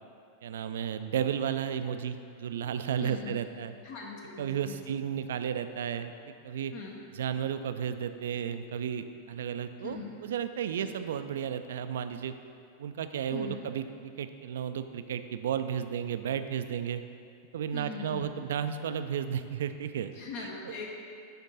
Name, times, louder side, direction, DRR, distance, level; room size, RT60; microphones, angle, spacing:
voice 1, 0.4-3.7 4.4-6.1 6.4-6.7 7.1-12.3 12.8-17.0 17.5-20.7, right 8 dB, 60° right, 10 dB, 0.3 m, -33 dB
voice 2, 3.0-3.3 3.8-4.8 6.7-7.0 9.8-10.1 10.8-10.9 13.3-13.6 17.7-18.3 20.1-20.9, left 4 dB, 50° left, -1 dB, 0.8 m, -41 dB
9.3 x 4.4 x 3.9 m, 2.4 s
figure-of-eight pair, 90°, 0 cm